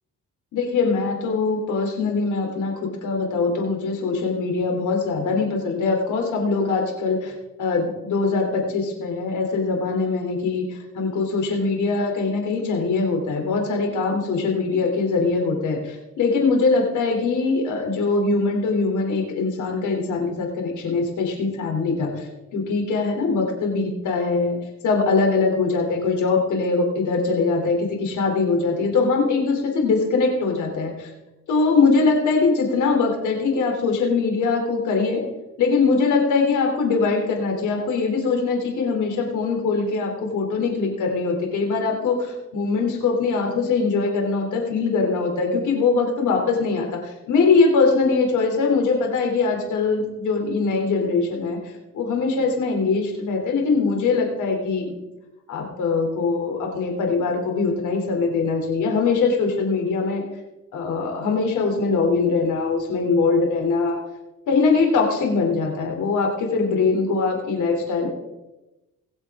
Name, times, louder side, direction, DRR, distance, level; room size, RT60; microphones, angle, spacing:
voice 1, 0.5-7.3 7.6-24.6 24.8-31.1 31.5-35.3 35.6-54.9 55.5-60.2 60.7-64.0 64.5-68.1, left 4 dB, 80° left, 2 dB, 3.3 m, -22 dB
20.5 x 7.5 x 3.7 m, 1.0 s
cardioid pair, 90°, 30 cm